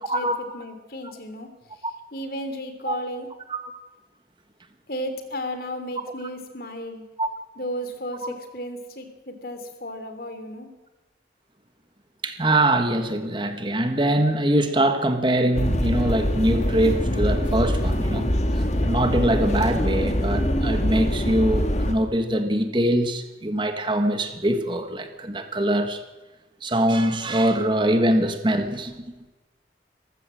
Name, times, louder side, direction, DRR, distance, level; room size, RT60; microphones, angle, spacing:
voice 1, 0.0-3.3 4.9-7.0 7.6-10.7, equal, 55° left, 3.1 m, -34 dB
voice 2, 12.2-18.3 18.6-26.0 26.6-28.9, right 1 dB, 25° right, 1.6 m, -23 dB
sound 1, 15.5-21.9, equal, 40° left, 1.9 m, -24 dB
26.0 x 15.0 x 7.7 m
head